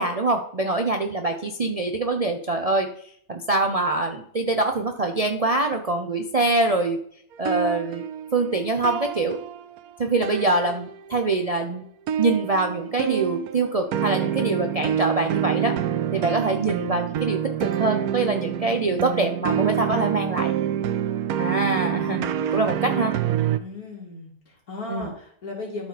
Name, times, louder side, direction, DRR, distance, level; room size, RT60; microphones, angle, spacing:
voice 1, 0.0-2.9 3.3-7.0 7.4-8.0 8.3-9.4 10.0-11.8 12.2-15.8 16.1-20.5 21.4-23.2 24.9-25.1, right 2 dB, 45° right, 4 dB, 0.5 m, -24 dB
sound 1, 7.3-9.9 10.2-11.2 12.1-23.6, right 10 dB, 85° right, 1.1 m, -27 dB
voice 2, 23.6-25.9, left 2 dB, 75° left, -3 dB, 3.3 m, -36 dB
12.5 x 4.5 x 4.2 m, 0.64 s
omnidirectional pair, 1.5 m